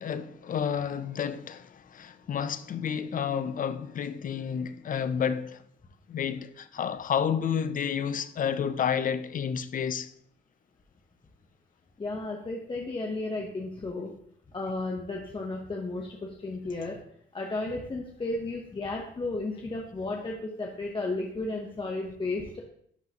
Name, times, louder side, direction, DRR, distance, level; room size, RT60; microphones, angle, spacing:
voice 1, 0.0-5.6 6.1-10.1, left 7 dB, 45° left, 0.4 m, -30 dB
voice 2, 12.0-14.1 14.5-17.0 17.3-22.6, left 2 dB, 25° left, 0.9 m, -33 dB
10.5 x 3.8 x 2.8 m
cardioid pair, 90°, 20 cm